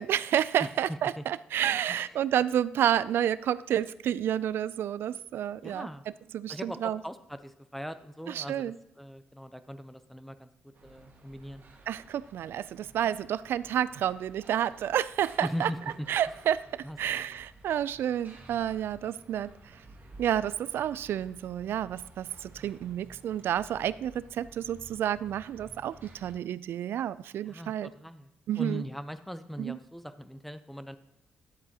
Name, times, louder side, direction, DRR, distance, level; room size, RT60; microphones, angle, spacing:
voice 1, 0.0-5.9 6.3-7.0 8.3-8.7 11.9-15.7 16.1-19.5 20.2-27.9 28.5-28.8 29.6-29.8, right 10 dB, 70° right, 18 dB, 0.3 m, -30 dB
voice 2, 1.9-2.2 5.6-6.0 6.5-11.6 13.0-13.2 15.4-16.1 16.8-17.4 27.4-28.3 28.6-31.0, equal, 5° left, 11 dB, 0.7 m, -40 dB
sound 1, 10.7-26.3, right 2 dB, 55° right, 1.7 m, -53 dB
10.5 x 8.0 x 2.9 m, 0.91 s
supercardioid pair, 65°, 4 cm